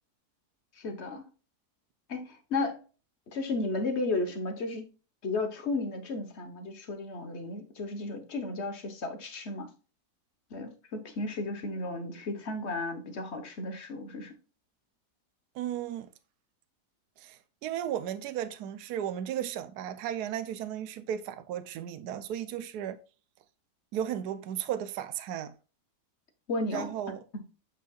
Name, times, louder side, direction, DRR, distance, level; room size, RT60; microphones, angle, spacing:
voice 1, 0.8-1.3 2.1-2.8 3.3-4.9 5.2-9.7 10.5-14.3 26.5-26.9, left 2 dB, 45° left, 1.3 m, -34 dB
voice 2, 15.5-16.1 17.2-23.0 23.9-25.5 26.7-27.2, right 10 dB, 80° right, 1.2 m, -35 dB
8.3 x 5.6 x 2.4 m
omnidirectional pair, 1.7 m